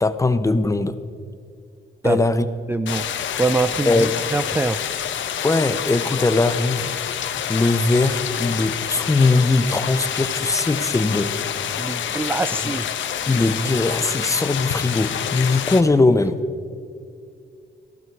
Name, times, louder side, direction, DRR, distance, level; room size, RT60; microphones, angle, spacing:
voice 1, 0.0-1.0 2.0-2.5 3.9-4.1 5.4-6.9 7.5-11.3 13.3-16.4, left 3 dB, 15° left, 11 dB, 0.7 m, -20 dB
voice 2, 2.7-4.8 11.8-12.9, right 3 dB, 10° right, 11 dB, 0.3 m, -24 dB
sound 1, 2.9-15.8, left 9 dB, 85° left, 0.8 m, -27 dB
16.0 x 12.0 x 4.7 m, 2.3 s
cardioid pair, 105°, 19 cm